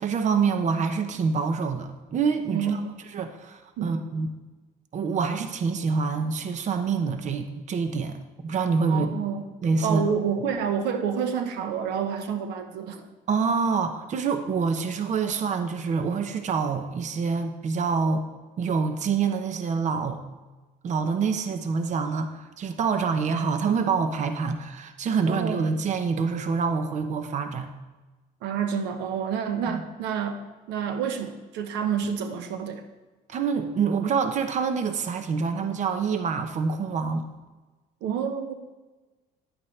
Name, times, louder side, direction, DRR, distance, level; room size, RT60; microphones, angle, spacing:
voice 1, 0.0-2.8 3.1-4.3 4.9-9.2 9.6-10.0 13.3-18.2 18.6-20.2 20.8-27.7 29.7-29.8 33.3-37.3, right 5 dB, 45° right, 8 dB, 0.8 m, -26 dB
voice 2, 2.5-3.0 3.8-4.0 8.9-9.5 9.8-13.1 25.3-25.6 28.4-32.8 38.0-38.5, right 7 dB, 90° right, 7 dB, 0.9 m, -28 dB
10.5 x 8.6 x 3.2 m, 1.2 s
cardioid pair, 110°, 17 cm